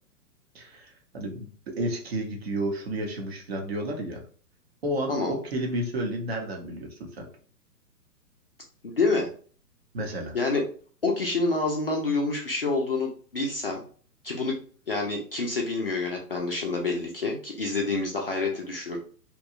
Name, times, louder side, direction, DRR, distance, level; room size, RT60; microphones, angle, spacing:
voice 1, 0.5-4.2 4.8-7.3 9.9-10.4, right 1 dB, 40° right, 2 dB, 0.6 m, -31 dB
voice 2, 8.8-9.3 10.3-10.6 11.0-13.8 14.2-14.5 14.9-19.0, left 3 dB, 40° left, 0 dB, 0.4 m, -27 dB
2.8 x 2.2 x 2.4 m, 0.43 s
figure-of-eight pair, 120°, 49 cm